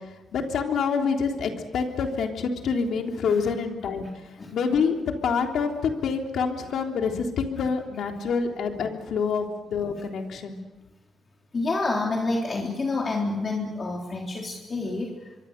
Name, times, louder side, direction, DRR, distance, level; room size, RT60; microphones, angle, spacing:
voice 1, 0.3-4.1 4.5-4.9 5.2-10.6, left 5 dB, 75° left, 3 dB, 3.3 m, -26 dB
voice 2, 11.5-15.5, left 3 dB, 40° left, -1 dB, 3.7 m, -28 dB
26.0 x 23.5 x 6.7 m, 1.2 s
cardioid pair, 85°, 0 cm